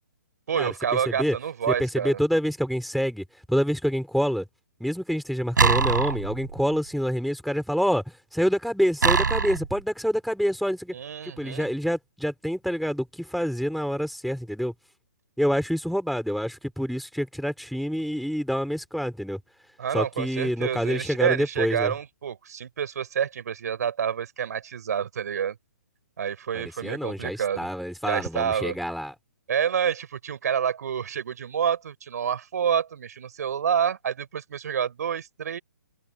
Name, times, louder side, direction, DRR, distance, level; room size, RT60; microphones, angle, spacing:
voice 1, 0.5-2.2 10.9-11.7 19.8-25.6 26.2-27.7 28.0-28.8 29.5-35.6, right 8 dB, 60° right, 5.6 m, -28 dB
voice 2, 1.8-4.4 4.8-8.0 8.3-10.9 11.2-14.7 15.4-19.4 19.9-21.9 26.5-29.1, equal, ahead, 4.6 m, -27 dB
sound 1, 5.6-6.8 9.0-9.8, right 4 dB, 80° right, 5.7 m, -23 dB
hypercardioid pair, 145°, 10 cm